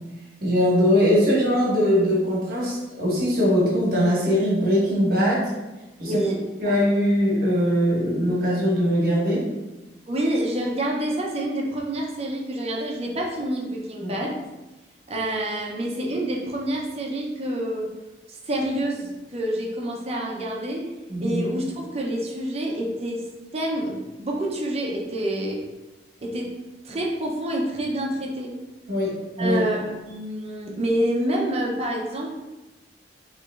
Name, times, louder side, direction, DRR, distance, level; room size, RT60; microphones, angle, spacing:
voice 1, 0.4-5.5 6.0-6.2 6.6-9.4 14.0-14.1 21.1-21.4 28.9-29.6, equal, 60° right, -5 dB, 1.3 m, -21 dB
voice 2, 6.0-6.4 6.6-6.8 10.1-14.4 15.1-17.9 18.3-20.9 21.2-23.3 23.5-25.6 26.2-26.5 26.8-28.5 29.4-32.3, right 1 dB, 35° right, -1 dB, 0.6 m, -27 dB
3.4 x 3.0 x 3.4 m, 1.1 s
head